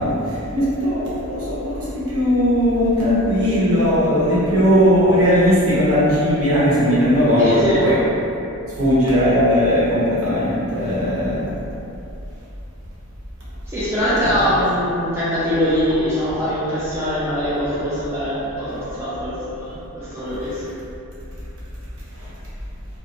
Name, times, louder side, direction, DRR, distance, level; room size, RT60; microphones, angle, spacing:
voice 1, 0.0-8.0 8.8-11.5 14.4-14.6 22.2-22.3, equal, 70° right, -9 dB, 0.8 m, -18 dB
voice 2, 7.4-7.9 13.7-20.6, equal, 10° right, -11 dB, 0.4 m, -22 dB
2.5 x 2.0 x 2.9 m, 2.8 s
head